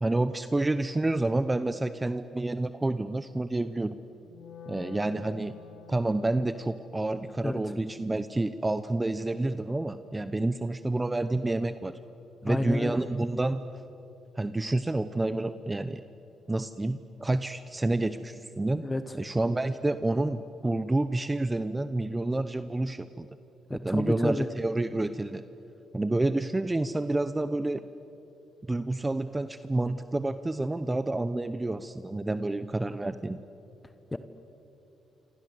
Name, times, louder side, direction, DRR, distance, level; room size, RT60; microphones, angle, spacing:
voice 1, 0.0-3.9 4.7-5.5 5.9-12.0 12.4-13.6 14.4-16.0 16.5-18.8 19.1-23.3 23.7-25.4 25.9-27.8 28.7-33.4, right 2 dB, 15° right, 12 dB, 0.9 m, -29 dB
Wind instrument woodwind instrument, 4.2-10.4, left 7 dB, 65° left, 2.3 m, -51 dB
voice 2, 12.5-13.0 18.8-19.1 23.9-24.5 34.1-34.2, left 2 dB, 20° left, 10 dB, 1.1 m, -30 dB
28.0 x 25.5 x 7.9 m, 2.9 s
cardioid pair, 90°, 0 cm